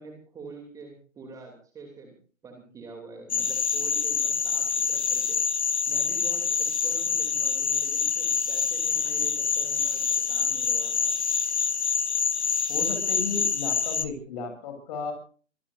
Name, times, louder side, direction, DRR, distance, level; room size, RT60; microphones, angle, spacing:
voice 1, 0.0-2.1 2.4-5.4 5.9-11.2, right 3 dB, 10° right, 2 dB, 2.9 m, -45 dB
sound 1, 3.3-14.0, left 6 dB, 60° left, 1.9 m, -26 dB
voice 2, 12.7-15.1, left 4 dB, 35° left, 6 dB, 7.8 m, -34 dB
25.5 x 20.0 x 2.6 m, 0.40 s
figure-of-eight pair, 135°, 38 cm